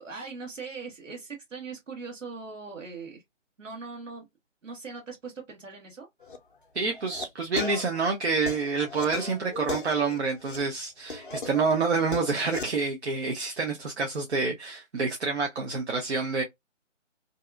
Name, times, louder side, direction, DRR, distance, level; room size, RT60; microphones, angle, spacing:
voice 1, 0.0-3.2 3.6-4.2 4.6-6.1, right 4 dB, 85° right, 1.3 m, -40 dB
sound 1, 6.2-6.4 6.9-7.2 7.6-10.6 11.1-12.7, left 3 dB, 45° left, 0.4 m, -37 dB
voice 2, 6.7-16.4, right 4 dB, 60° right, 0.7 m, -28 dB
2.7 x 2.3 x 2.3 m
figure-of-eight pair, 155°, 37 cm